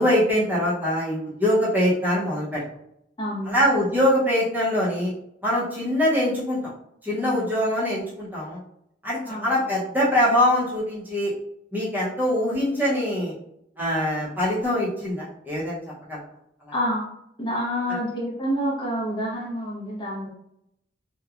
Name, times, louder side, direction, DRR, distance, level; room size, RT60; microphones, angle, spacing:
voice 1, 0.0-2.6 3.4-5.1 5.4-6.7 7.0-8.6 9.0-11.3 11.7-13.3 13.8-15.8 16.1-16.2 16.6-16.7 17.9-18.0, left 1 dB, 10° right, -8 dB, 0.7 m, -23 dB
voice 2, 3.2-3.6 7.2-7.4 9.3-9.5 16.7-17.0 17.4-20.3, equal, 25° left, -4 dB, 0.7 m, -28 dB
2.8 x 2.2 x 2.4 m, 0.76 s
head